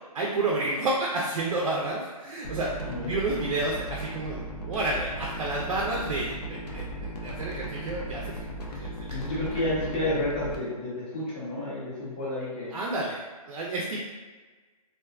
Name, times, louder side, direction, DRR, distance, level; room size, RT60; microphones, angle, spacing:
voice 1, 0.1-4.4 4.6-8.3 8.7-9.2 12.7-13.2 13.5-14.0, right 2 dB, 70° right, -3 dB, 0.5 m, -30 dB
sound 1, 2.4-10.6, right 1 dB, 90° left, 0.6 m, -37 dB
voice 2, 2.8-3.1 9.1-12.7, left 1 dB, 15° left, -7 dB, 0.4 m, -30 dB
2.5 x 2.3 x 2.3 m, 1.3 s
hypercardioid pair, 165°, 20 cm